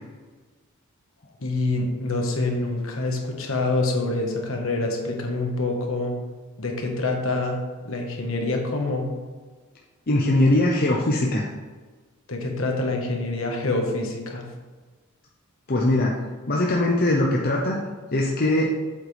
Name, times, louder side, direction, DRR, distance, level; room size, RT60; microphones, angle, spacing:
voice 1, 1.4-6.1 6.6-7.6 7.8-9.1 12.3-14.5, left 2 dB, 65° left, 1 dB, 1.5 m, -26 dB
voice 2, 10.1-11.5 15.7-16.2 16.5-17.8 18.1-18.7, left 1 dB, 45° left, -2 dB, 0.8 m, -21 dB
8.0 x 7.5 x 3.4 m, 1.4 s
head